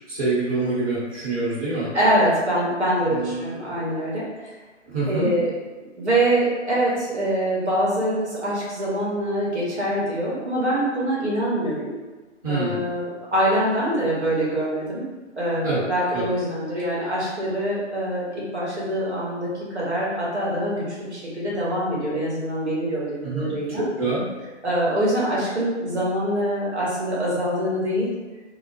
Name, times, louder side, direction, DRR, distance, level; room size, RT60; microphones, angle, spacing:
voice 1, 0.1-1.9 3.1-3.8 4.9-5.3 12.4-12.8 15.6-15.8 16.1-16.2 23.2-23.5 23.8-24.2, right 3 dB, 30° right, -9 dB, 1.0 m, -26 dB
voice 2, 1.9-4.5 5.1-5.5 6.0-11.9 12.5-15.0 15.4-23.8 24.6-28.1, right 1 dB, 65° right, -6 dB, 0.9 m, -24 dB
2.1 x 2.0 x 3.0 m, 1.2 s
figure-of-eight pair, 135°, 36 cm